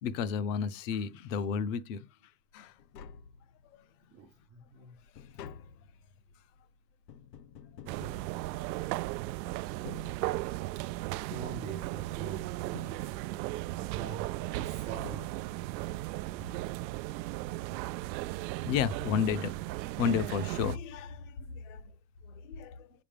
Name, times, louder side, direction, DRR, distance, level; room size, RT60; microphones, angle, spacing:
voice 1, 0.0-2.0 2.5-2.7 9.6-9.9 18.6-19.5 20.0-21.8 22.3-22.8, left 7 dB, 50° left, 1.0 m, -32 dB
Tap, 2.5-2.6 2.8-3.9 4.3-9.1 9.7-10.8 11.3-12.3 12.7-13.6 14.6-14.7 15.0-15.9 16.1-16.2, left 8 dB, 75° left, 1.2 m, -51 dB
voice 2, 4.1-4.9 11.3-12.5 13.8-15.3, right 6 dB, 15° right, 0.4 m, -43 dB
sound 1, 7.9-20.8, right 18 dB, 85° right, 0.5 m, -36 dB
9.7 x 7.2 x 3.4 m
supercardioid pair, 175°, 50 cm